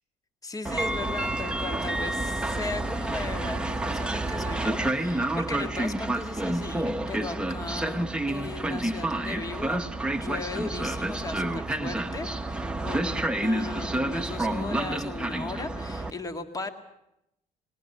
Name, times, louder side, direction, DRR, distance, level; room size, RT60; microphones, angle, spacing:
voice 1, 0.4-9.8 10.1-16.7, left 3 dB, 25° left, 7 dB, 2.1 m, -37 dB
Train, 0.6-16.1, right 1 dB, 5° right, 1.3 m, -29 dB
20.0 x 18.5 x 8.7 m, 0.83 s
cardioid pair, 100°, 15 cm